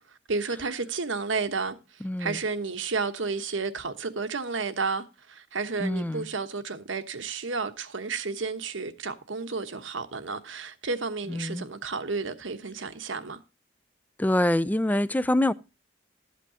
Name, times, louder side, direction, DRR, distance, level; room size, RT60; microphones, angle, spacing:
voice 1, 0.3-1.8 2.2-13.4, right 4 dB, 75° right, 1.1 m, -31 dB
voice 2, 2.0-2.4 5.8-6.3 11.3-11.7 14.2-15.5, left 1 dB, 10° left, 0.4 m, -25 dB
12.5 x 8.3 x 2.8 m
head